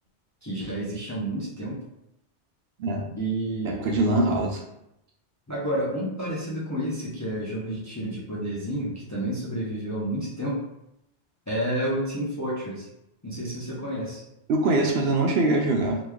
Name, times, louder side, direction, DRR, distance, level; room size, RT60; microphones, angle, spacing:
voice 1, 0.4-1.8 3.2-3.8 4.1-4.3 5.5-10.6 11.5-12.9 13.2-14.2, right 1 dB, 20° left, -6 dB, 0.5 m, -30 dB
voice 2, 2.8-3.2 3.6-4.5 14.5-16.0, right 2 dB, 70° right, 1 dB, 0.8 m, -23 dB
3.0 x 2.3 x 3.5 m, 0.83 s
omnidirectional pair, 1.1 m